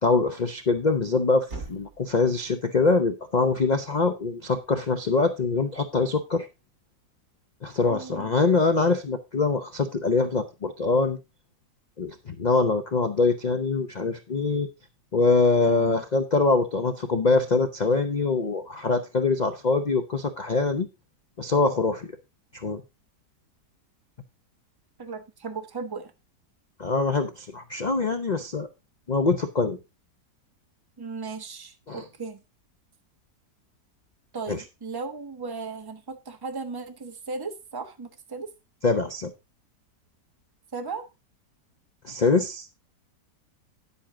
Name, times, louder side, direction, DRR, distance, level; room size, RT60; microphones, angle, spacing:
voice 1, 0.0-6.5 7.6-11.2 12.0-14.7 15.1-20.9 21.4-22.1 22.5-22.8 26.8-28.7 29.1-29.8 31.9-32.0 34.5-34.6 38.8-39.3 42.0-42.7, left 3 dB, 40° left, 0.6 m, -24 dB
Thump thud, 0.6-4.7, right 3 dB, 40° right, 3.0 m, -46 dB
voice 2, 7.9-8.3 15.7-16.0 25.0-26.1 31.0-32.4 34.3-38.5 40.7-41.1, right 4 dB, 15° right, 1.0 m, -36 dB
10.0 x 8.3 x 3.7 m
omnidirectional pair, 1.8 m